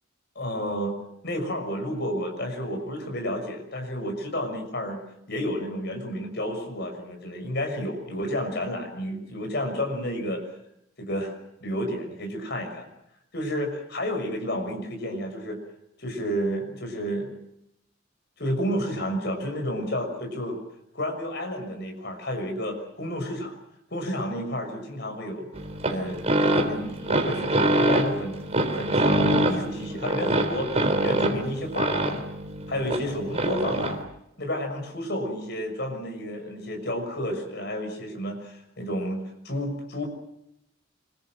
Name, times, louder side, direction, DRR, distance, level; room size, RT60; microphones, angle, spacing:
voice 1, 0.3-1.0 1.2-5.0 5.3-10.4 11.0-11.3 11.6-12.9 13.3-15.6 16.0-17.3 18.4-20.6 20.9-23.5 23.9-25.5 25.8-32.2 32.7-34.0 34.4-40.1, equal, 50° left, 3 dB, 6.3 m, -31 dB
sound 1, 25.6-34.0, right 1 dB, 30° right, 3.5 m, -25 dB
26.5 x 22.0 x 7.6 m, 0.81 s
head